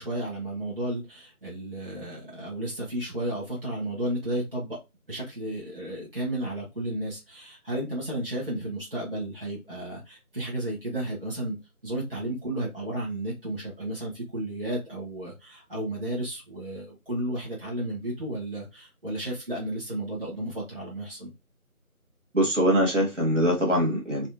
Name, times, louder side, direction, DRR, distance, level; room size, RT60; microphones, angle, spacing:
voice 1, 0.0-4.8 5.1-11.6 11.8-21.3, right 1 dB, 40° right, -6 dB, 1.5 m, -33 dB
voice 2, 22.3-24.3, equal, 55° right, -2 dB, 1.7 m, -23 dB
4.1 x 2.3 x 2.8 m, 0.24 s
figure-of-eight pair, 170°, 44 cm